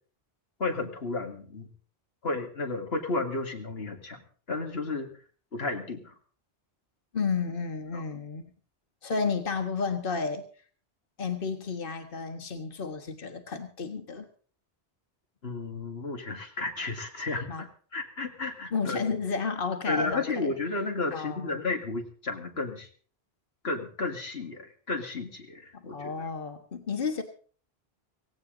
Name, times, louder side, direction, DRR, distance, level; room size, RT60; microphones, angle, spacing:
voice 1, 0.6-1.7 2.2-4.2 4.5-5.1 5.5-6.1 7.9-8.0 15.4-17.7 17.9-19.0 19.9-22.9 23.6-26.1, left 3 dB, 80° left, 3 dB, 2.3 m, -32 dB
voice 2, 7.1-8.4 9.0-10.4 11.2-14.3 17.5-17.6 18.7-20.5 21.1-21.6 25.7-27.2, left 5 dB, 60° left, 6 dB, 1.7 m, -32 dB
17.0 x 16.5 x 3.9 m, 0.43 s
omnidirectional pair, 1.0 m